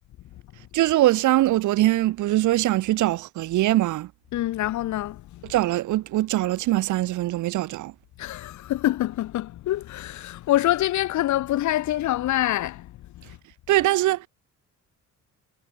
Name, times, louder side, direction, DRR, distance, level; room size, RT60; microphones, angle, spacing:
voice 1, 0.7-4.1 5.4-7.9 13.7-14.3, right 15 dB, 80° right, 2.6 m, -22 dB
voice 2, 4.3-5.4 8.2-13.2, left 14 dB, 70° left, 7.0 m, -26 dB
cardioid pair, 175°, 30 cm